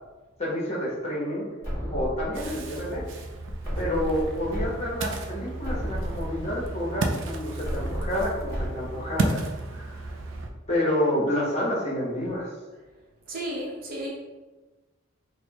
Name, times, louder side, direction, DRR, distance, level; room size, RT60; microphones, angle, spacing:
voice 1, 0.4-1.5 1.9-3.1 3.8-10.1 10.7-12.5, left 1 dB, 35° left, -5 dB, 1.0 m, -29 dB
sound 1, 1.6-2.6 3.6-4.7 5.1-5.2 5.6-6.6 7.6-8.7, equal, 15° left, 1.5 m, -33 dB
Ocean, 2.3-10.5, right 2 dB, 70° right, 0.4 m, -33 dB
voice 2, 13.3-14.1, right 1 dB, 50° right, -3 dB, 0.8 m, -33 dB
4.3 x 2.1 x 2.8 m, 1.2 s
head